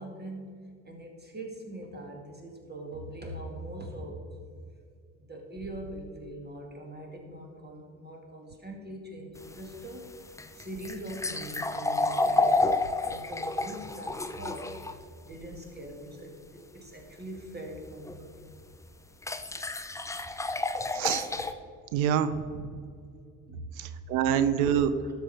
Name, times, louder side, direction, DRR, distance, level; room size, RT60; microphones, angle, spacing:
voice 1, 0.0-4.2 5.3-10.1 10.5-18.5 23.5-23.7 25.0-25.1, right 1 dB, 20° right, 1 dB, 2.2 m, -42 dB
sound 1, 9.4-15.0 18.0-18.2 19.2-21.5, left 2 dB, 5° left, 0.5 m, -30 dB
voice 2, 20.9-21.3 21.9-22.7 23.8-24.9, right 9 dB, 70° right, 11 dB, 0.7 m, -26 dB
12.5 x 5.5 x 4.3 m, 2.3 s
hypercardioid pair, 60°, 44 cm